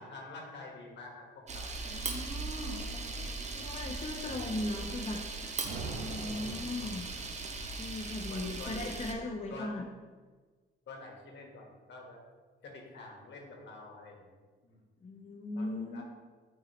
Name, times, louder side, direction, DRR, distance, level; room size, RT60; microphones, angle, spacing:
voice 1, 0.0-2.0 3.0-3.6 6.3-6.6 8.3-8.8 9.5-9.8 10.9-12.2 12.6-14.8 15.5-16.0, left 3 dB, 65° left, 0 dB, 1.4 m, -48 dB
Camera, 1.5-9.1, right 3 dB, 35° right, 0.7 m, -39 dB
voice 2, 1.9-5.2 5.9-7.1 7.8-9.9 15.0-16.0, left 2 dB, 35° left, 0 dB, 0.7 m, -38 dB
sound 1, 5.6-7.6, right 3 dB, 75° right, 0.7 m, -42 dB
6.8 x 4.6 x 3.0 m, 1.4 s
cardioid pair, 90°, 20 cm